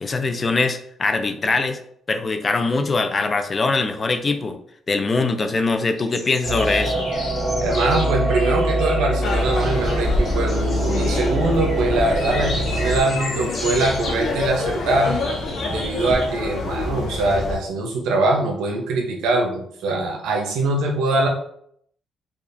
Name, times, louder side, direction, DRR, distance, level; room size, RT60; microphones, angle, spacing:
voice 1, 0.0-1.8 2.1-4.6 4.9-7.1, left 3 dB, 35° left, 8 dB, 0.4 m, -22 dB
sound 1, 6.0-16.3, left 2 dB, 55° left, 1.4 m, -34 dB
sound 2, 6.4-13.0, equal, 55° right, 1.3 m, -23 dB
voice 2, 7.6-15.2 15.7-21.3, right 2 dB, 90° right, 1 dB, 0.8 m, -22 dB
sound 3, 9.2-17.6, left 2 dB, 70° left, 0.7 m, -27 dB
4.8 x 2.4 x 2.6 m, 0.67 s
cardioid pair, 90°, 0 cm